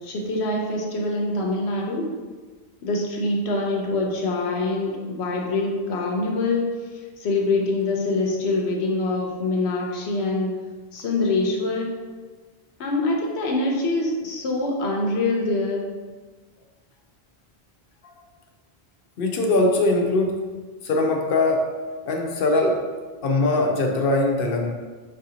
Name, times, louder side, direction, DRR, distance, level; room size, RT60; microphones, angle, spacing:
voice 1, 0.0-2.1 2.8-6.7 7.2-10.6 10.9-12.0 12.8-15.8, left 2 dB, 90° left, 0 dB, 1.0 m, -24 dB
voice 2, 19.2-20.4 20.8-21.7 22.1-22.8 23.2-24.7, left 2 dB, 65° left, 1 dB, 0.7 m, -21 dB
5.4 x 2.6 x 2.8 m, 1.4 s
omnidirectional pair, 1.1 m